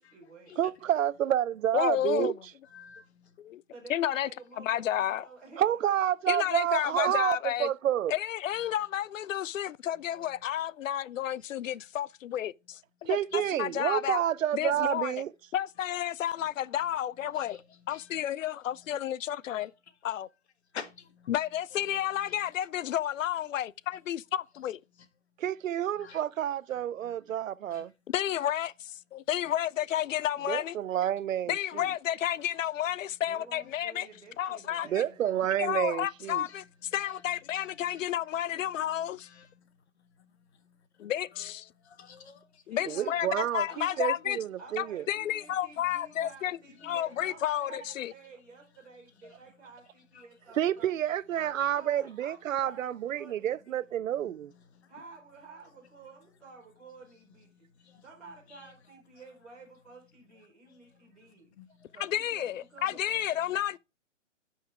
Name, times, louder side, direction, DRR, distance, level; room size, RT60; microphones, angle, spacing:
voice 1, 0.0-0.5 3.7-5.9 33.3-35.5 42.6-44.1 44.6-51.0 51.3-53.8 54.9-57.7 58.0-61.5 61.9-63.2, right 4 dB, ahead, 0.5 m, -52 dB
voice 2, 0.6-2.3 5.6-8.1 13.1-15.3 25.4-27.9 30.5-31.9 34.9-36.4 42.9-45.0 50.6-54.5, right 11 dB, 85° right, 0.6 m, -29 dB
voice 3, 1.7-2.3 3.4-3.6 3.9-4.3 4.6-5.3 6.3-7.7 8.1-14.2 14.5-15.2 15.5-17.6 17.9-19.7 20.0-20.3 21.3-24.8 28.1-30.8 31.5-34.1 34.4-35.0 35.6-39.3 41.0-41.7 42.7-44.4 44.8-46.6 46.8-48.1 62.0-63.8, left 11 dB, 75° left, 0.5 m, -31 dB
voice 4, 2.7-3.3 8.7-8.8 10.1-10.3 13.3-13.5 17.3-17.6 17.9-18.1 20.7-21.3 26.0-26.2 27.7-27.8 36.5-36.6 37.0-37.1 37.5-38.0 39.2-39.4 41.8-42.6 46.2-46.3 46.8-47.0 50.1-50.2 51.4-51.6 54.7-54.9 57.8-58.0 61.6-61.9 63.1-63.3, left 7 dB, 55° left, 1.3 m, -47 dB
10.5 x 5.6 x 3.4 m
hypercardioid pair, 165°, 39 cm